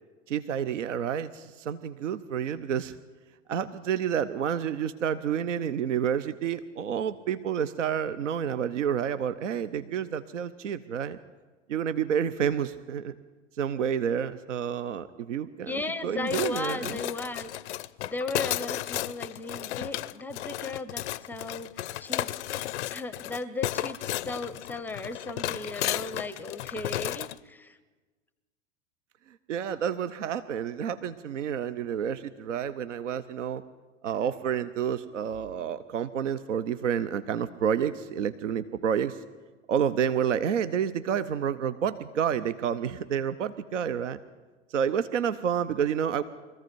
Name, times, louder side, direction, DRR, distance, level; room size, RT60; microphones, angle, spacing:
voice 1, 0.3-2.9 3.5-11.2 11.7-13.1 13.6-17.0 29.5-33.6 34.0-39.2 39.7-44.2 44.7-46.2, right 8 dB, 75° right, 14 dB, 0.7 m, -29 dB
voice 2, 15.7-27.8, left 3 dB, 5° left, 14 dB, 0.5 m, -36 dB
sound 1, 16.3-27.4, left 14 dB, 65° left, 0.5 m, -33 dB
21.5 x 14.5 x 4.5 m, 1.3 s
figure-of-eight pair, 95°, 37 cm